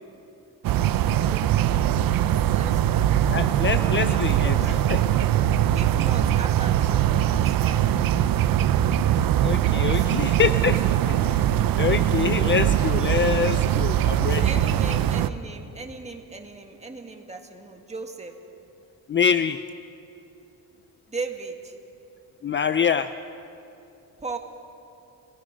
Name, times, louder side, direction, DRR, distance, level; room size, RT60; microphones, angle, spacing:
sound 1, 0.6-15.3, right 11 dB, 80° right, 0.7 m, -22 dB
voice 1, 2.5-3.3 4.1-4.8 5.7-8.5 9.7-10.7 14.4-18.4 21.1-21.8 24.2-24.4, right 3 dB, 20° right, 3 dB, 1.8 m, -38 dB
voice 2, 3.3-5.0 9.4-10.8 11.1-11.4 11.8-14.5 19.1-19.6 22.4-23.1, left 7 dB, 35° left, 11 dB, 0.5 m, -25 dB
29.0 x 19.0 x 5.2 m, 2.8 s
cardioid pair, 125°, 34 cm